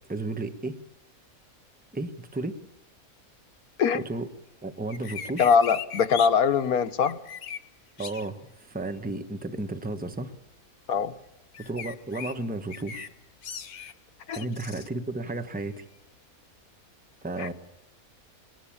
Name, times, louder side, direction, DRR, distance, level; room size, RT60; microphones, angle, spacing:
voice 1, 0.1-0.8 1.9-2.5 3.9-4.3 4.6-5.5 8.0-8.4 8.7-10.3 11.7-13.1 14.4-15.8 17.2-17.5, right 2 dB, 5° right, 8 dB, 1.0 m, -33 dB
sound 1, 4.9-6.3 7.0-7.6 8.0-8.3 11.5-12.3 12.7-13.1 13.4-13.9 14.3-14.9, left 7 dB, 75° left, 1.5 m, -38 dB
voice 2, 5.4-7.2 10.9-11.1 14.3-14.5 17.4-17.5, left 6 dB, 90° left, 12 dB, 1.5 m, -22 dB
21.0 x 19.5 x 8.7 m, 0.86 s
omnidirectional pair, 1.5 m